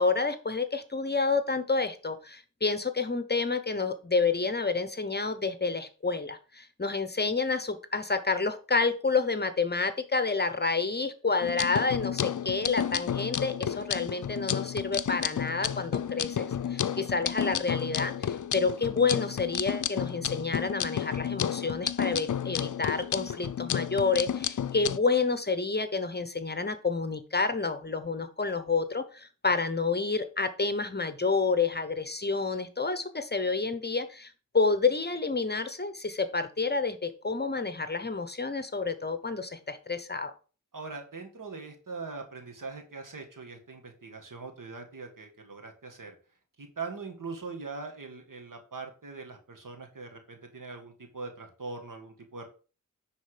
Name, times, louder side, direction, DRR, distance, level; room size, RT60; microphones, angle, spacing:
voice 1, 0.0-40.3, left 4 dB, 30° left, 10 dB, 0.9 m, -29 dB
sound 1, 11.4-25.0, left 9 dB, 70° left, 0.5 m, -32 dB
voice 2, 40.7-46.2 46.6-52.5, right 4 dB, 80° right, 3 dB, 2.0 m, -41 dB
10.0 x 4.2 x 5.1 m, 0.36 s
wide cardioid pair, 70°, 32 cm